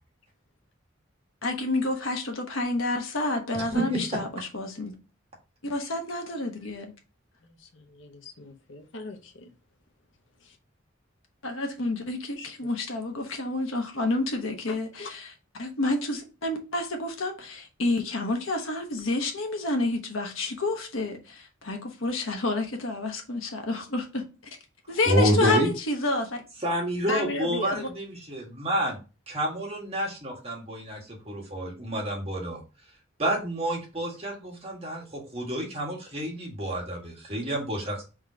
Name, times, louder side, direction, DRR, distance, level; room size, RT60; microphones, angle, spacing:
voice 1, 1.4-4.9 5.6-6.9 11.4-15.3 15.6-24.2 24.9-26.4 27.7-27.9, left 2 dB, 90° left, 1.1 m, -29 dB
voice 2, 3.6-4.2 25.1-25.7 26.6-29.0 29.3-32.6 33.2-38.0, equal, 30° right, 1.5 m, -29 dB
voice 3, 7.4-9.5 10.4-10.6 12.4-12.5 14.7-15.1 27.1-27.8, left 2 dB, 65° left, 0.8 m, -37 dB
3.7 x 2.9 x 4.8 m
head